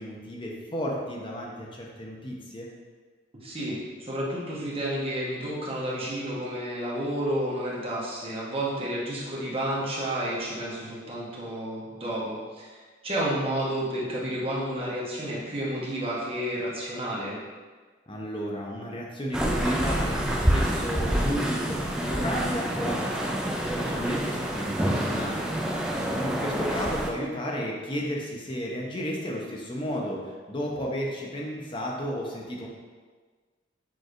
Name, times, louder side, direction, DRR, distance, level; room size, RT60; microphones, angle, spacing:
voice 1, 0.0-2.7 18.1-23.4 23.7-25.5 26.1-32.7, equal, 25° left, -2 dB, 0.7 m, -33 dB
voice 2, 3.3-17.4, right 1 dB, 30° right, -6 dB, 1.1 m, -31 dB
sound 1, 19.3-27.1, right 1 dB, 5° right, 0.3 m, -27 dB
6.2 x 3.2 x 2.5 m, 1.5 s
head